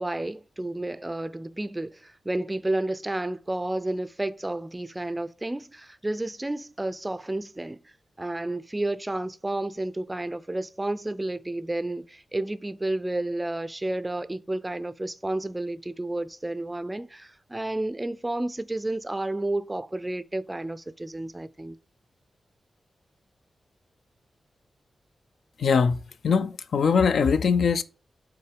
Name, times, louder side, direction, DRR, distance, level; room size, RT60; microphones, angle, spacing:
voice 1, 0.0-7.8 8.2-21.8, right 1 dB, 15° right, 0.4 m, -31 dB
voice 2, 25.6-26.0 26.2-27.8, left 5 dB, 75° left, 0.4 m, -21 dB
5.7 x 3.6 x 4.8 m
wide cardioid pair, 115°, 0 cm